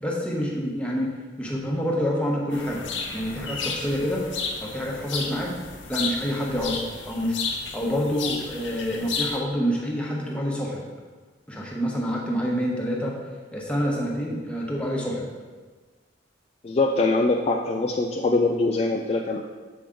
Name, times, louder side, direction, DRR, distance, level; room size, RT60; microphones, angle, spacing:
voice 1, 0.0-1.1 1.4-2.9 3.1-4.2 4.6-5.5 5.9-10.8 11.5-13.1 13.5-15.3, equal, 5° left, -3 dB, 1.1 m, -27 dB
sound 1, 2.5-9.4, left 5 dB, 85° left, 0.8 m, -33 dB
voice 2, 16.6-19.4, left 3 dB, 35° left, 2 dB, 0.4 m, -23 dB
7.1 x 5.0 x 3.8 m, 1.3 s
head